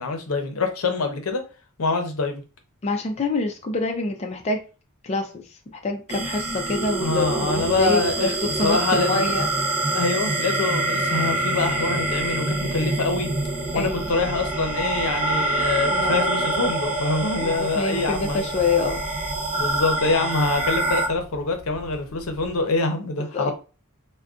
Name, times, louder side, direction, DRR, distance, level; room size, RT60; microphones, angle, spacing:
voice 1, 0.0-1.4 1.8-2.4 7.0-8.4 8.6-9.4 9.9-13.3 13.7-18.5 19.6-23.5, left 3 dB, 80° left, 0.7 m, -25 dB
voice 2, 2.8-4.6 5.0-5.4 5.7-9.5 13.7-14.1 15.9-16.2 17.4-19.0 23.3-23.5, left 3 dB, 30° left, 0.4 m, -26 dB
sound 1, 6.1-21.1, right 2 dB, 30° right, 0.6 m, -26 dB
Telephone, 13.1-22.8, equal, 65° right, 0.8 m, -44 dB
2.4 x 2.2 x 3.5 m
head